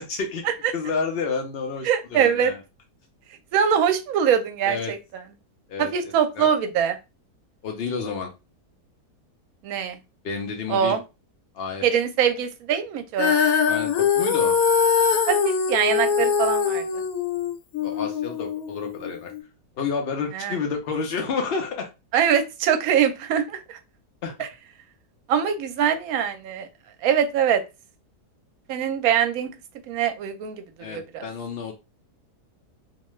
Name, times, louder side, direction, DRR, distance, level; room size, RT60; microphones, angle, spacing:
voice 1, 0.0-0.4 0.7-2.6 4.6-4.9 5.7-6.5 7.6-8.3 10.2-11.0 11.5-11.8 13.7-14.6 17.8-19.3 19.8-21.9 24.2-24.3 30.8-31.7, left 5 dB, 80° left, 3 dB, 0.5 m, -30 dB
voice 2, 1.8-2.5 3.5-5.0 5.8-7.0 9.6-10.0 10.7-11.0 11.8-13.4 15.3-16.8 20.3-20.6 22.1-23.8 24.4-24.5 25.3-26.7 27.0-27.6 28.7-29.5 29.9-30.6 30.9-31.2, right 8 dB, 70° right, 7 dB, 1.0 m, -23 dB
Female singing, 13.2-19.4, left 6 dB, 65° left, 0.9 m, -22 dB
2.7 x 2.2 x 3.1 m, 0.26 s
omnidirectional pair, 1.7 m